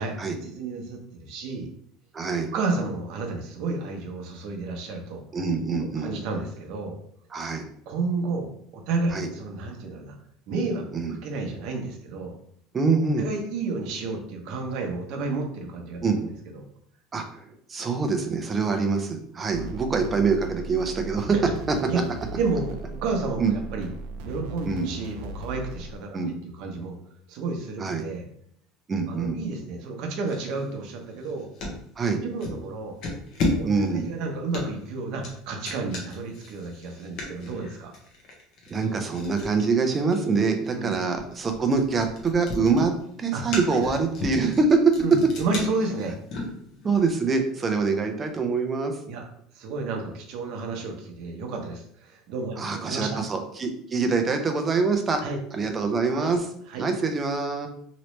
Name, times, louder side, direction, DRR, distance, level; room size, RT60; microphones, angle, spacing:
voice 1, 0.4-1.7 2.5-5.2 6.0-7.0 7.9-10.2 10.5-12.3 13.2-16.6 19.5-19.7 21.3-21.4 21.9-22.0 22.3-23.9 24.2-27.0 27.3-28.3 29.1-31.5 32.2-33.0 33.6-37.9 40.7-40.9 43.3-43.4 43.7-43.9 45.0-46.2 49.1-49.2 49.5-53.2 55.2-55.4 56.0-56.3 56.7-56.8, right 3 dB, 55° right, 2 dB, 0.8 m, -31 dB
voice 2, 2.1-2.5 5.3-6.1 7.3-7.6 9.1-9.3 10.9-11.1 12.7-13.3 16.0-16.2 17.1-21.4 21.7-21.8 23.4-23.5 24.7-24.9 26.1-26.3 27.8-28.0 28.9-29.4 32.0-32.2 33.6-34.1 38.7-42.9 43.2-44.8 46.8-48.9 52.6-55.2 55.5-56.5 56.8-57.7, right 4 dB, 20° right, 5 dB, 0.5 m, -25 dB
sound 1, 19.5-26.0, right 2 dB, 80° right, 0.4 m, -38 dB
sound 2, 30.3-31.8 32.4-32.6 33.0-47.0, left 2 dB, 50° left, 1.0 m, -35 dB
3.1 x 2.9 x 3.0 m, 0.66 s
cardioid pair, 155°, 0 cm